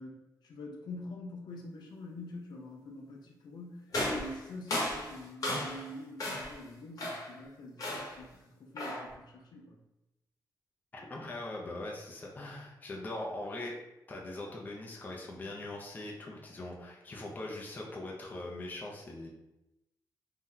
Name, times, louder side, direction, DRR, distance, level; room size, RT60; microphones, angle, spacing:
voice 1, 0.0-9.8, left 2 dB, 70° left, 0 dB, 0.5 m, -46 dB
sound 1, 3.9-5.9 6.2-6.6 7.0-7.4 7.8-8.2 8.8-9.1, left 1 dB, 50° left, 1.0 m, -35 dB
voice 2, 10.9-13.8 14.1-19.3, left 2 dB, 25° left, -2 dB, 0.5 m, -41 dB
2.7 x 2.1 x 3.7 m, 0.94 s
wide cardioid pair, 170°, 7 cm